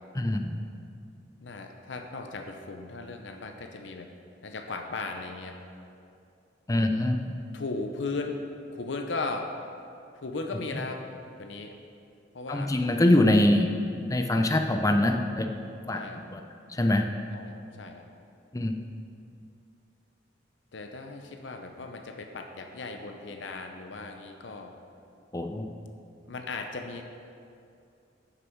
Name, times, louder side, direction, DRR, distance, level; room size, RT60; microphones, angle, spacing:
voice 1, 0.1-0.5 6.7-7.3 12.5-13.7 14.1-15.5 15.9-16.0 16.3-16.4 16.7-17.1 18.5-18.7 25.3-25.7, left 1 dB, 20° left, 5 dB, 0.5 m, -23 dB
voice 2, 1.4-4.1 4.4-5.6 7.5-8.4 8.7-9.5 10.1-11.0 11.4-11.8 12.3-12.7 15.9-16.2 17.3-18.1 20.7-24.7 26.3-27.0, left 3 dB, 75° left, 5 dB, 0.7 m, -37 dB
10.5 x 7.0 x 4.6 m, 2.5 s
head